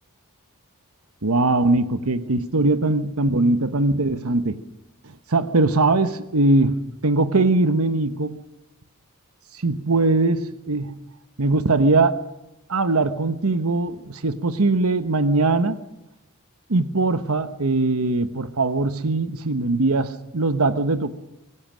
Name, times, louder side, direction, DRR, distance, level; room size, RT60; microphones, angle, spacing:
voice 1, 1.2-4.6 5.3-8.4 9.6-11.0 11.4-12.2 12.7-15.8 16.7-21.1, right 2 dB, 85° right, 11 dB, 1.2 m, -21 dB
25.5 x 19.5 x 6.4 m, 0.92 s
head